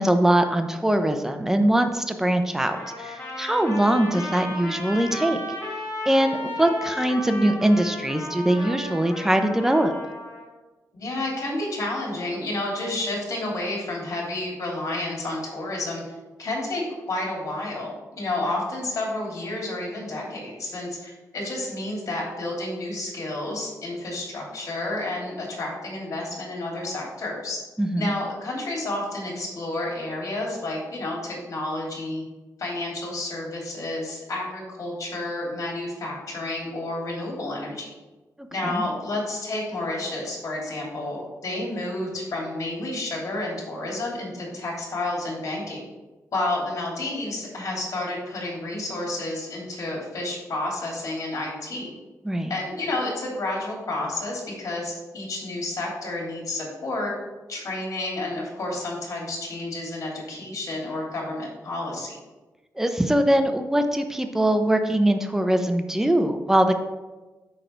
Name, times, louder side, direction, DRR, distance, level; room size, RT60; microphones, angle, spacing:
voice 1, 0.0-5.4 6.1-9.9 27.8-28.1 38.4-38.8 52.2-52.5 62.8-66.7, right 1 dB, 5° right, 6 dB, 0.7 m, -22 dB
Trumpet, 2.7-10.5, left 1 dB, 40° left, 2.5 m, -35 dB
voice 2, 10.9-16.0 16.4-16.8 17.1-27.6 28.0-32.2 32.6-37.9 38.5-45.9 46.3-51.9 52.5-57.1 57.5-62.1, left 2 dB, 60° left, -2 dB, 2.8 m, -30 dB
6.6 x 6.3 x 4.5 m, 1.2 s
wide cardioid pair, 110°, 6 cm